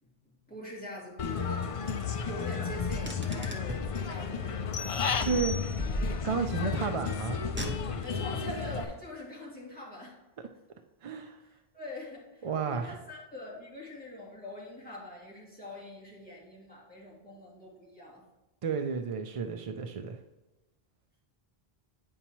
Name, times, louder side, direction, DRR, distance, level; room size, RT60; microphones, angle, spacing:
voice 1, 0.0-4.6 8.0-10.2 11.7-18.2, left 1 dB, 10° left, -7 dB, 2.5 m, -44 dB
Human voice / Bird, 1.2-8.8, left 6 dB, 50° left, 0.4 m, -33 dB
Car, 3.0-4.0 5.2-6.5 7.4-8.2, equal, 15° right, 0.7 m, -37 dB
sound 1, 4.7-6.3, left 4 dB, 70° left, 0.9 m, -41 dB
voice 2, 5.1-5.5 6.2-7.4 11.0-11.4 12.4-13.0 18.6-20.2, right 5 dB, 50° right, 6 dB, 0.4 m, -32 dB
8.6 x 5.5 x 3.0 m, 1.0 s
omnidirectional pair, 1.0 m